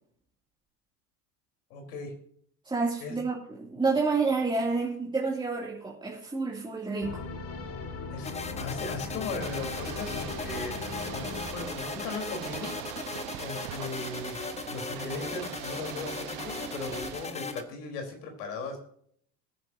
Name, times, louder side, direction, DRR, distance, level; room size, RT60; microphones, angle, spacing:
voice 1, 1.7-2.1 3.0-3.2 8.1-8.3 8.6-10.8 11.1-11.2 11.5-12.7 13.4-18.8, left 3 dB, 65° left, 3 dB, 4.4 m, -38 dB
voice 2, 2.6-7.2, right 4 dB, 10° right, -4 dB, 3.0 m, -29 dB
Epic Warm Chords, 7.0-12.5, left 4 dB, 30° left, 2.1 m, -39 dB
sound 1, 8.2-17.6, left 4 dB, 15° left, 1.2 m, -38 dB
Ocean / Boat Water vehicle, 9.4-17.3, right 14 dB, 45° right, 1.2 m, -42 dB
22.0 x 10.0 x 2.8 m, 0.64 s
hypercardioid pair, 90°, 49 cm